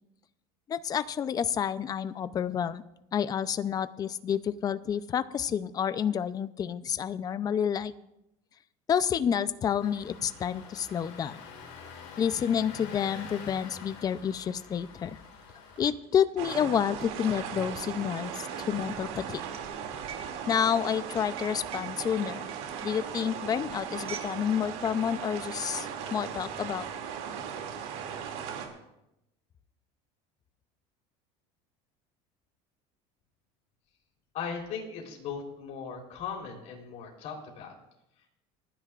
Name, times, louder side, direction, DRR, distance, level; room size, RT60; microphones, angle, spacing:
voice 1, 0.7-2.8 3.1-7.9 8.9-11.4 12.2-15.2 15.8-19.4 20.5-22.5 22.8-26.9, left 8 dB, 25° left, 14 dB, 0.5 m, -29 dB
Engine starting, 9.8-15.9, left 6 dB, 75° left, 3.8 m, -46 dB
sound 1, 14.5-24.4 24.7-24.9 25.6-26.3, right 8 dB, 40° right, 1.6 m, -48 dB
sound 2, 16.4-28.7, right 7 dB, 75° right, 2.5 m, -38 dB
voice 2, 34.3-37.7, left 6 dB, 50° left, 0 dB, 3.8 m, -38 dB
28.5 x 10.0 x 2.5 m, 0.86 s
cardioid pair, 140°, 14 cm